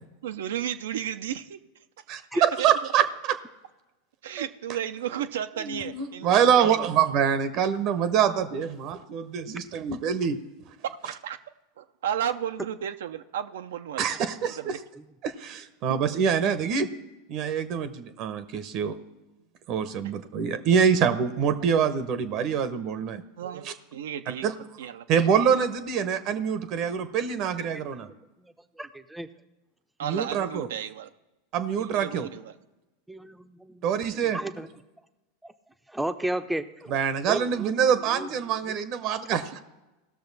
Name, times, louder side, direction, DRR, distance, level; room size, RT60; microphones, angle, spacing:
voice 1, 0.2-1.6 2.3-2.7 4.2-6.9 11.1-11.4 11.8-14.1 14.5-14.8 23.4-23.7 23.9-24.5 24.8-25.1 30.0-31.1 31.8-32.5, right 9 dB, 75° right, 10 dB, 0.6 m, -33 dB
voice 2, 2.1-3.3 5.6-10.4 14.0-14.8 15.2-16.9 17.3-19.0 19.7-23.7 24.4-24.5 25.1-28.1 30.0-30.7 31.5-32.3 33.8-34.4 36.9-39.6, right 7 dB, 50° right, 12 dB, 0.9 m, -25 dB
voice 3, 28.8-29.3 33.1-34.1 34.3-34.7 35.4-35.5 35.9-36.9 37.3-37.7 38.1-38.3, right 1 dB, 5° right, 9 dB, 0.7 m, -32 dB
17.5 x 6.6 x 4.1 m, 1.0 s
hypercardioid pair, 90°, 0 cm